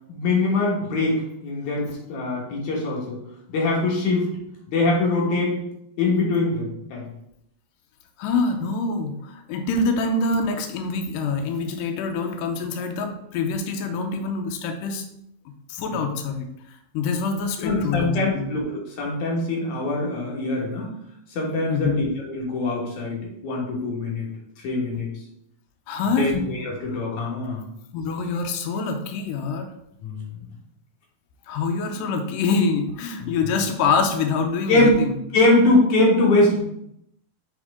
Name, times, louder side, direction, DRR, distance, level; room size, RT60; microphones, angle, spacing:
voice 1, 0.1-3.2 3.5-4.3 4.7-5.5 6.0-7.1 15.9-16.0 17.6-20.9 21.3-24.3 24.6-25.1 26.2-27.7 30.0-30.3 33.2-33.3 34.7-34.9 35.3-36.6, left 2 dB, 60° left, -3 dB, 2.6 m, -23 dB
voice 2, 8.2-15.0 15.7-16.5 16.9-18.5 21.7-22.0 25.9-26.3 27.9-29.7 31.5-35.1, left 4 dB, 80° left, 4 dB, 2.0 m, -25 dB
6.3 x 4.6 x 3.6 m, 0.77 s
omnidirectional pair, 4.5 m